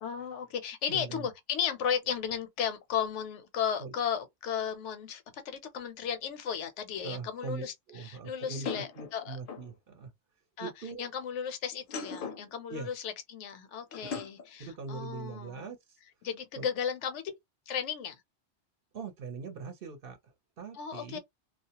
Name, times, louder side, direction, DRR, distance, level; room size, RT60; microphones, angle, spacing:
voice 1, 0.0-9.4 10.6-10.7 11.0-15.7 16.2-17.2 17.7-18.2 20.7-21.2, left 8 dB, 80° left, 0.9 m, -35 dB
voice 2, 0.9-1.3 3.8-3.9 7.0-10.1 10.6-11.1 12.7-12.9 14.0-14.2 14.6-15.8 16.6-16.7 18.9-21.2, right 5 dB, 55° right, 0.8 m, -41 dB
sound 1, 6.5-6.6 8.6-9.7 11.7-12.5 13.9-14.5, left 5 dB, 60° left, 0.7 m, -39 dB
2.3 x 2.1 x 2.8 m
omnidirectional pair, 1.2 m